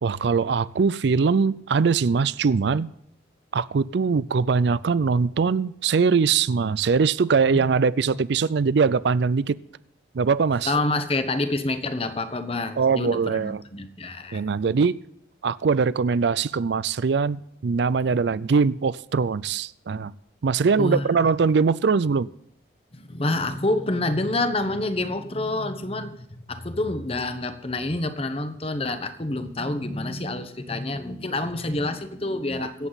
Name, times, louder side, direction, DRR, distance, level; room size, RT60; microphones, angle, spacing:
voice 1, 0.0-2.9 3.5-9.6 10.1-10.7 12.8-13.6 14.3-15.0 15.4-20.1 20.4-22.3 32.6-32.9, right 5 dB, 65° right, 0.4 m, -22 dB
voice 2, 10.7-14.4 18.1-18.2 20.8-21.1 22.9-32.9, left 2 dB, 30° left, 0.9 m, -27 dB
24.0 x 8.1 x 4.0 m
head